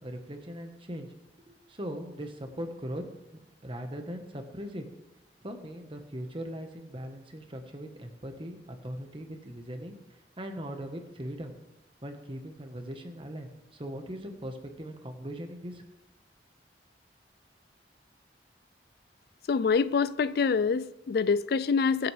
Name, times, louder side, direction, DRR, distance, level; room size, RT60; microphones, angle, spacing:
voice 1, 0.0-1.1 1.5-3.0 3.3-4.8 5.4-10.0 10.4-11.5 12.0-15.9, equal, 30° right, 1.3 m, -40 dB
voice 2, 19.5-22.1, left 5 dB, 60° left, 0.4 m, -26 dB
21.5 x 8.0 x 3.4 m
head